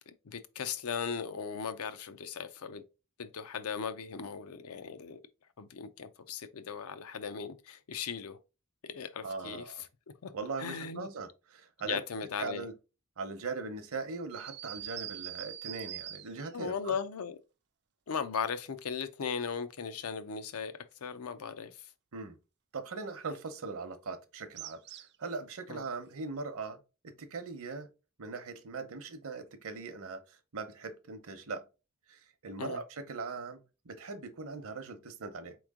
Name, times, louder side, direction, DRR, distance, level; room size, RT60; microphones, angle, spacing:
voice 1, 0.2-2.8 3.2-5.2 5.6-8.4 8.8-9.9 10.2-10.3 10.6-11.1 11.8-12.7 16.5-17.4 18.1-21.9 25.7-25.8 32.6-32.8, left 6 dB, 70° left, 0.5 m, -37 dB
voice 2, 9.2-9.8 10.3-12.0 12.4-12.7 13.2-16.9 22.1-22.4 22.7-27.9 28.2-31.7 32.1-35.6, right 4 dB, 65° right, 0.8 m, -40 dB
sound 1, 14.3-16.6 24.6-25.3, right 12 dB, 50° right, 0.4 m, -43 dB
4.3 x 3.1 x 3.6 m
head